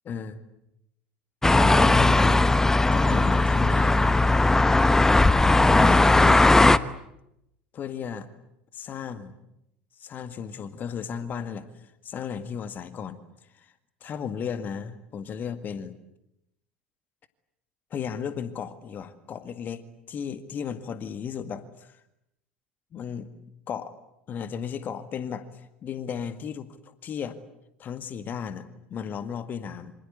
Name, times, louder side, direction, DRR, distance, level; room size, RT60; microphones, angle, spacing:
voice 1, 0.1-0.4 1.5-2.5 2.9-4.0 5.5-6.5 7.7-8.3 8.7-9.4 10.0-11.7 12.0-13.2 13.6-13.7 14.0-15.9 17.9-19.8 20.1-22.0 22.9-23.3 23.7-23.9 24.3-25.5 25.8-26.7 27.0-27.4 27.8-29.9, left 7 dB, 35° left, 12 dB, 2.0 m, -34 dB
sound 1, 1.4-6.8, left 2 dB, 10° left, 1.0 m, -18 dB
27.5 x 26.0 x 8.3 m, 0.82 s
figure-of-eight pair, 70°, 5 cm